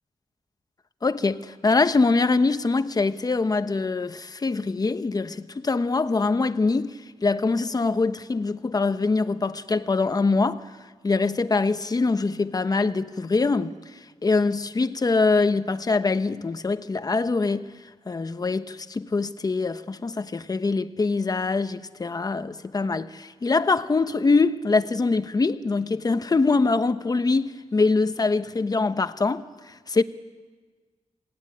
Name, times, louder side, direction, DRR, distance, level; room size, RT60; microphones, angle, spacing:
voice 1, 1.0-10.8 11.0-30.0, left 3 dB, 30° left, 0.9 m, -24 dB
26.5 x 18.5 x 9.9 m
wide cardioid pair, 135°, 12 cm